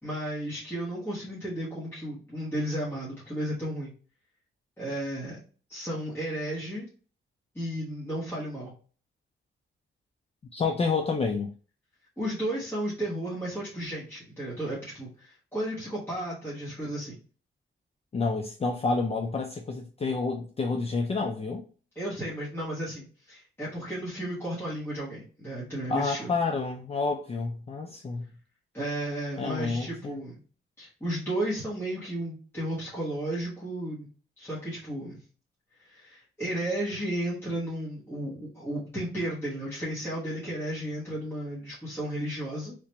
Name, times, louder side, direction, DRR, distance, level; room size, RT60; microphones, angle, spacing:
voice 1, 0.0-3.9 4.8-5.4 5.7-6.9 7.5-8.7 12.2-17.2 21.9-26.4 28.7-30.4 30.8-34.1 34.4-35.2 35.8-42.7, right 1 dB, 10° left, 1.4 m, -33 dB
voice 2, 10.5-11.5 18.1-21.6 25.9-28.3 29.4-30.2, left 4 dB, 30° left, 0.4 m, -29 dB
3.3 x 2.9 x 2.9 m
wide cardioid pair, 140°, 21 cm